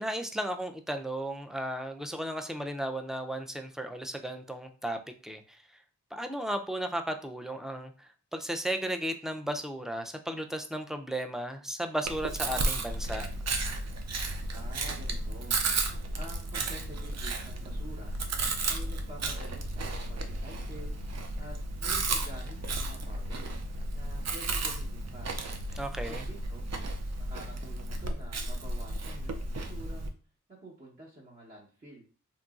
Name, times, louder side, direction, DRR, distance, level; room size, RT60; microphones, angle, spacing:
voice 1, 0.0-5.0 5.2-5.6 6.1-13.3 25.8-26.2, right 1 dB, ahead, 6 dB, 0.4 m, -35 dB
Chewing mastication, 12.0-30.1, right 2 dB, 60° right, 0.5 m, -33 dB
voice 2, 14.5-15.6 16.1-18.2 18.7-21.0 21.4-23.5 23.9-25.3 25.9-26.7 27.2-30.1 30.5-32.0, right 1 dB, 30° right, -6 dB, 0.9 m, -48 dB
2.9 x 2.6 x 2.3 m, 0.37 s
cardioid pair, 70°, 30 cm